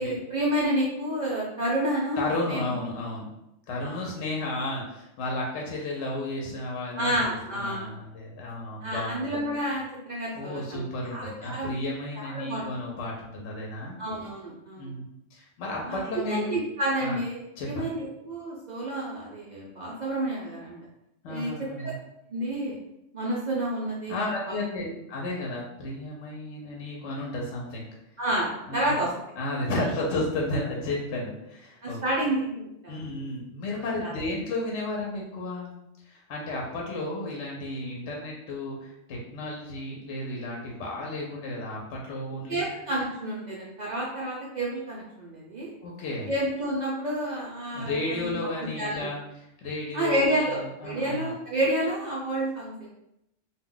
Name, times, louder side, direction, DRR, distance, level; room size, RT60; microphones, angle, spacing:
voice 1, 0.0-2.6 3.8-4.1 7.0-7.9 8.8-11.7 12.2-12.6 14.0-14.9 15.8-16.0 16.3-17.4 17.7-20.8 21.3-21.7 22.3-22.8 23.1-24.2 24.5-24.6 28.2-29.1 29.7-29.9 31.8-33.0 33.8-34.1 42.5-45.7 46.3-48.5 48.8-49.2 49.9-52.9, right 1 dB, 65° right, -5 dB, 0.4 m, -30 dB
voice 2, 2.2-3.3 3.7-9.4 10.3-14.0 14.8-15.0 15.3-16.5 17.0-17.2 17.6-17.9 21.2-21.9 24.1-27.8 28.7-28.9 29.4-32.0 32.9-35.7 36.0-42.6 45.8-46.3 47.7-49.2 49.6-51.3, left 2 dB, 70° left, -2 dB, 0.9 m, -33 dB
2.2 x 2.1 x 3.7 m, 0.84 s
omnidirectional pair, 1.3 m